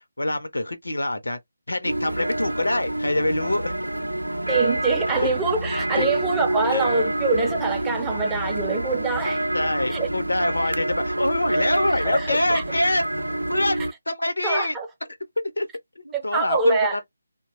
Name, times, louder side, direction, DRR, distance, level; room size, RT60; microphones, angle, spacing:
voice 1, 0.0-1.4 1.7-3.8 5.1-5.3 6.0-6.1 6.7-6.9 9.5-13.0 13.5-14.8 15.6-15.7 16.0-17.1, left 1 dB, 75° left, 0.7 m, -25 dB
sound 1, 1.8-13.9, right 1 dB, 80° right, 0.4 m, -27 dB
voice 2, 4.5-9.4 9.9-10.1 12.0-12.6 14.4-14.9 16.1-17.1, right 4 dB, 10° right, 0.5 m, -24 dB
2.7 x 2.2 x 2.8 m
figure-of-eight pair, 150°, 0 cm